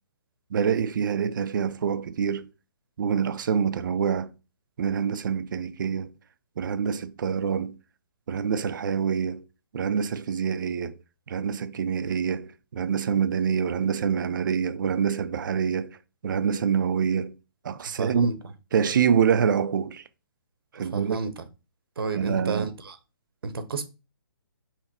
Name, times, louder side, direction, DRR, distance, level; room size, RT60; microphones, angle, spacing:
voice 1, 0.5-2.5 3.0-4.3 4.8-6.1 6.6-7.8 8.3-9.4 9.7-11.0 11.3-16.0 16.2-17.3 17.6-18.3 18.7-20.0 20.7-21.2 22.1-22.6, right 7 dB, 55° right, 0.5 m, -26 dB
voice 2, 17.8-18.5 20.7-21.5 22.0-23.0 23.4-23.8, right 3 dB, 75° right, 0.9 m, -31 dB
5.7 x 2.1 x 4.2 m
hypercardioid pair, 155°, 12 cm